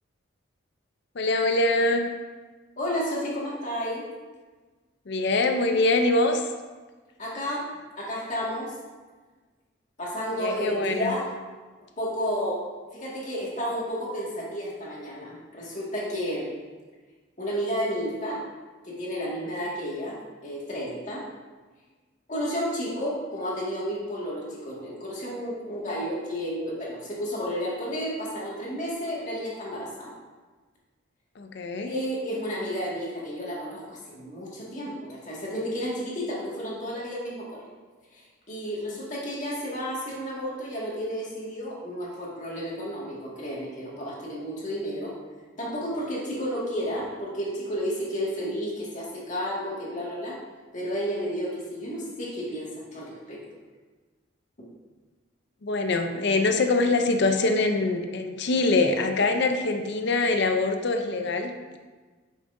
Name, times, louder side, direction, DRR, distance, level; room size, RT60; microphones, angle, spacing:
voice 1, 1.2-2.1 5.1-6.5 10.4-11.1 31.4-31.9 55.6-61.8, left 2 dB, 60° left, 6 dB, 0.6 m, -24 dB
voice 2, 2.8-4.0 7.2-7.7 8.0-8.7 10.0-11.2 12.0-12.6 12.9-16.5 17.4-18.4 18.8-20.2 20.4-21.2 22.3-30.1 31.9-37.6 38.1-45.1 45.6-50.4 50.7-53.4, equal, 40° left, -5 dB, 1.9 m, -32 dB
9.2 x 6.5 x 2.6 m, 1.3 s
head